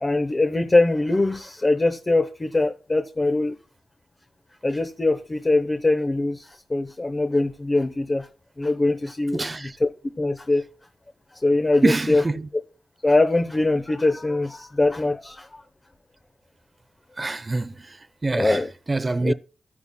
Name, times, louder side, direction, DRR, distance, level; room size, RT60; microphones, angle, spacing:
voice 1, 0.0-3.5 4.6-8.3 8.6-9.9 10.2-10.7 11.3-12.2 13.0-15.6 18.3-18.7 19.2-19.3, left 2 dB, 30° left, 0.8 m, -22 dB
voice 2, 9.3-9.8 11.8-12.5 17.2-18.6 18.9-19.3, right 3 dB, 30° right, 0.6 m, -25 dB
13.5 x 9.7 x 2.2 m
cardioid pair, 75°, 0 cm